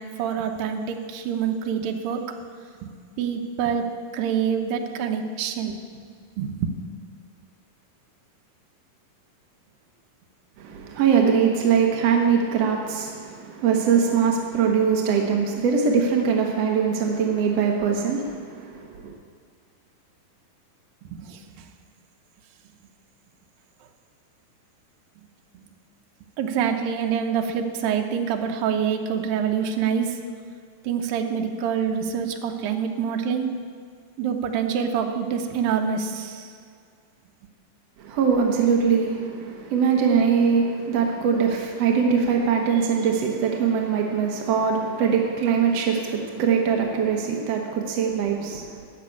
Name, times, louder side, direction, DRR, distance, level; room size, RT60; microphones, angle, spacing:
voice 1, 0.0-2.3 2.8-5.8 6.4-6.7 21.0-21.4 25.6-25.7 26.4-30.2 30.8-33.5 34.2-36.5, right 7 dB, 85° right, 4 dB, 2.6 m, -26 dB
voice 2, 10.6-19.1 38.0-48.9, right 6 dB, 60° right, 1 dB, 1.8 m, -22 dB
12.5 x 6.7 x 8.6 m, 2.1 s
omnidirectional pair, 4.0 m